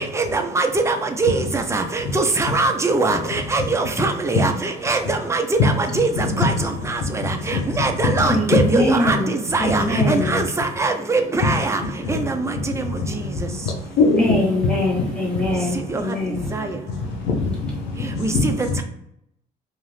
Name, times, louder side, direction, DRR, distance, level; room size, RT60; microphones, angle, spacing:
voice 1, 0.0-11.8 12.1-12.5 15.9-16.0 16.5-16.7 18.2-18.3, right 3 dB, 15° right, 0.4 m, -22 dB
voice 2, 5.6-6.7 7.5-7.6 8.0-8.6 9.6-10.3 12.0-12.1 14.0-14.7 15.3-15.5 17.3-17.9 18.3-18.8, left 3 dB, 90° left, 0.8 m, -21 dB
voice 3, 8.2-9.3 9.6-10.4 14.2-16.5, left 1 dB, 5° left, 1.2 m, -23 dB
2.5 x 2.4 x 3.2 m
cardioid pair, 110°, 17 cm